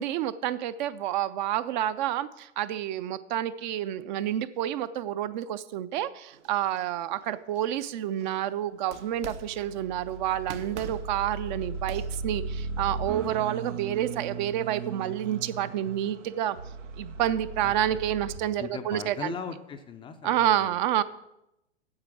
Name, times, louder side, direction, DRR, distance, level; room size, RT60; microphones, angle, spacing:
voice 1, 0.0-16.6 17.0-19.3 20.2-21.0, right 11 dB, 40° right, 14 dB, 0.5 m, -29 dB
sound 1, 6.3-8.4 8.8-9.9 10.3-12.5, right 6 dB, 70° right, 1.1 m, -46 dB
sound 2, 8.9-18.4, right 4 dB, 85° right, 0.7 m, -37 dB
voice 2, 17.6-18.0 18.6-20.8, left 6 dB, 15° left, 7 dB, 0.4 m, -40 dB
8.7 x 7.5 x 6.0 m, 0.87 s
hypercardioid pair, 110°, 36 cm